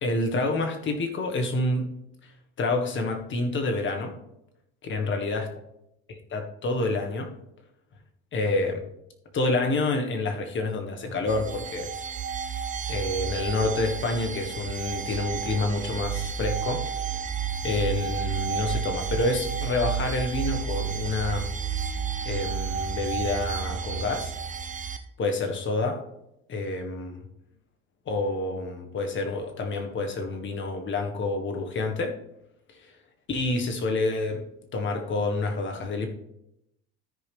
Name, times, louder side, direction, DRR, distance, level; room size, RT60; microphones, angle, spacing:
voice 1, 0.0-1.9 2.2-2.3 2.6-4.2 4.8-5.5 6.1-7.3 8.3-8.8 9.3-11.9 12.9-16.8 17.6-21.5 22.2-24.3 25.2-26.0 26.5-27.2 28.0-32.1 32.7-32.9 33.3-34.4 34.7-36.1, left 2 dB, 40° left, 4 dB, 1.5 m, -28 dB
sound 1, 11.3-25.0, right 7 dB, 25° right, 0.7 m, -31 dB
13.5 x 5.0 x 3.4 m, 0.83 s
supercardioid pair, 110°, 30 cm